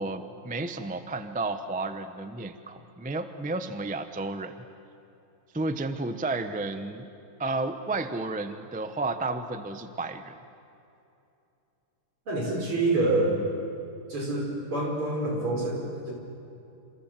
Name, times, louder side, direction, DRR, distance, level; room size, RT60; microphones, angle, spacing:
voice 1, 0.0-4.5 5.5-7.1 7.4-10.4, right 3 dB, 10° right, 9 dB, 0.4 m, -32 dB
voice 2, 12.3-13.3 14.1-16.1, right 2 dB, 80° right, -1 dB, 6.2 m, -27 dB
28.5 x 27.0 x 7.6 m, 2.7 s
omnidirectional pair, 2.4 m